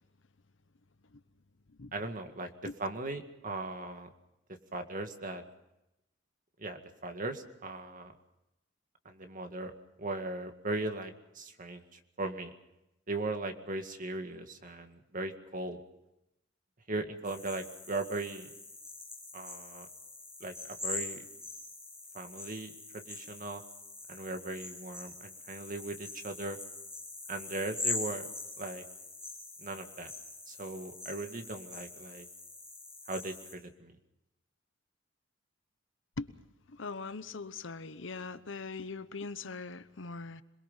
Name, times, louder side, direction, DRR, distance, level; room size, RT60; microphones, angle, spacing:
voice 1, 1.9-2.5 2.8-4.1 4.7-5.4 6.6-8.1 9.1-9.7 10.0-12.5 13.1-15.8 16.9-18.5 19.3-19.9 20.4-21.2 22.1-23.6 24.1-26.6 27.3-28.3 28.6-28.8 29.6-30.1 30.5-32.3 33.1-34.0, right 2 dB, 45° right, 6 dB, 2.1 m, -38 dB
sound 1, 17.2-33.5, left 3 dB, 5° right, 7.3 m, -43 dB
voice 2, 36.7-40.4, left 4 dB, 70° left, 13 dB, 1.0 m, -41 dB
27.0 x 21.5 x 5.7 m, 0.90 s
head